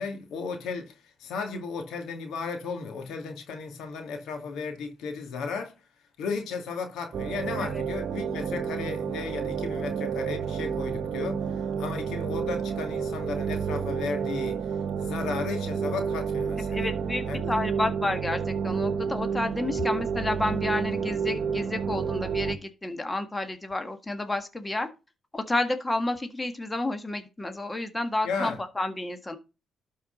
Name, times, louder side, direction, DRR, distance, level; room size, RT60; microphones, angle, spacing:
voice 1, 0.0-5.8 6.2-14.7 15.0-16.9 17.3-17.5 28.2-28.6, left 5 dB, 80° left, 2.4 m, -34 dB
sound 1, 7.1-22.6, right 6 dB, 60° right, 1.1 m, -30 dB
voice 2, 16.6-24.9 25.3-29.4, left 2 dB, 15° left, 1.6 m, -30 dB
12.0 x 4.7 x 5.3 m
cardioid pair, 90°, 0 cm